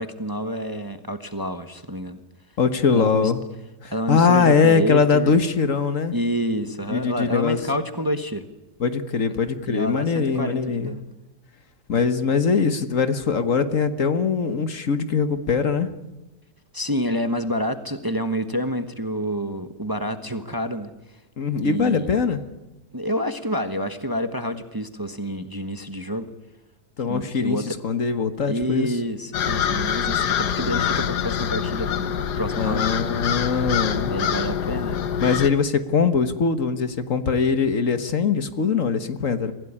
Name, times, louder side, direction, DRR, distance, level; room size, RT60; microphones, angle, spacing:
voice 1, 0.0-2.2 2.9-3.3 3.9-5.3 6.1-8.5 9.7-11.0 11.9-12.0 16.7-20.9 21.6-22.1 22.9-26.3 27.0-27.8 28.5-32.9 34.0-35.0, equal, 15° right, 9 dB, 1.1 m, -28 dB
voice 2, 2.6-3.4 3.8-6.2 6.9-7.6 8.8-10.9 11.9-15.9 21.4-22.5 27.0-29.0 32.6-34.2 35.2-39.5, left 5 dB, 50° left, 10 dB, 1.6 m, -22 dB
sound 1, 29.3-35.5, left 8 dB, 75° left, 1.7 m, -25 dB
25.0 x 16.5 x 10.0 m, 1.0 s
omnidirectional pair, 1.8 m